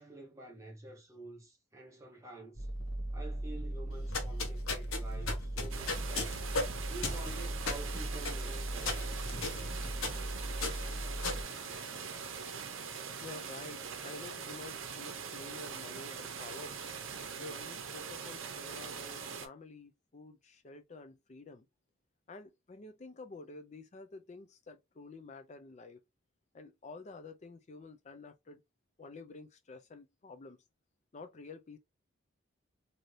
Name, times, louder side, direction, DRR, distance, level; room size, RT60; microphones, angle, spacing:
voice 1, 0.0-2.7 3.1-6.5 6.9-9.2, right 2 dB, 15° right, 0.7 m, -49 dB
sound 1, 2.6-11.4, right 1 dB, 60° left, 1.1 m, -38 dB
sound 2, 3.9-12.3, left 3 dB, 90° left, 0.9 m, -38 dB
sound 3, 5.7-19.5, right 6 dB, 70° right, 0.6 m, -42 dB
voice 2, 13.2-16.8 17.4-21.7 22.3-26.0 26.5-28.6 29.0-30.6 31.1-31.8, left 3 dB, 35° left, 0.4 m, -50 dB
2.7 x 2.6 x 3.1 m
head